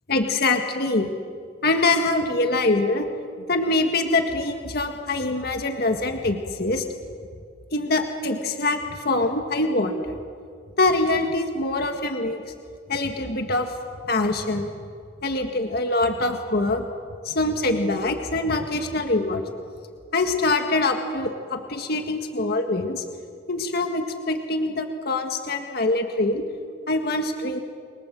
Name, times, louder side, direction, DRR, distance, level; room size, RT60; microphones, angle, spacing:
voice 1, 0.1-1.1 1.6-3.1 3.5-6.8 7.7-10.2 10.8-12.4 12.9-13.7 14.0-14.7 15.2-16.9 17.2-19.4 20.1-23.0 23.5-26.5 26.9-27.6, left 2 dB, 55° left, 5 dB, 1.9 m, -24 dB
30.0 x 23.0 x 7.7 m, 2.2 s
head